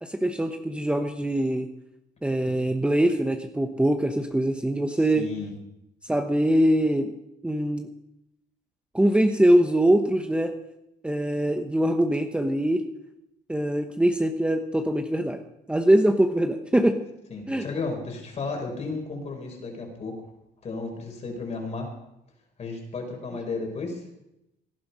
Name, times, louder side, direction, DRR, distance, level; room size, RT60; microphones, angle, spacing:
voice 1, 0.0-1.7 2.2-5.2 6.1-7.1 7.4-7.9 8.9-10.5 11.0-12.8 13.5-15.4 15.7-17.0 17.5-17.6, right 1 dB, 5° right, 5 dB, 1.0 m, -23 dB
voice 2, 5.1-5.5 17.3-20.2 20.6-21.9 22.6-24.0, left 3 dB, 40° left, 2 dB, 4.8 m, -33 dB
18.0 x 11.5 x 5.6 m, 0.85 s
cardioid pair, 110°, 17 cm